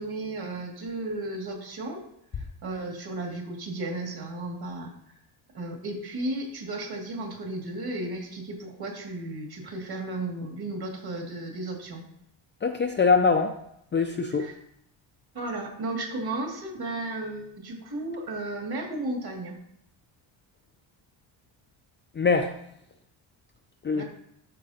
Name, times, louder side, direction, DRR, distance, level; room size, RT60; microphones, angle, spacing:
voice 1, 0.0-2.0 2.3-4.9 5.5-12.0 14.4-14.5 15.3-19.6 23.9-24.0, right 2 dB, 50° right, 0 dB, 2.3 m, -34 dB
voice 2, 12.6-13.5 13.9-14.5 22.1-22.6 23.8-24.0, left 4 dB, 25° left, 4 dB, 0.4 m, -23 dB
12.5 x 4.8 x 2.8 m, 0.75 s
cardioid pair, 110°, 49 cm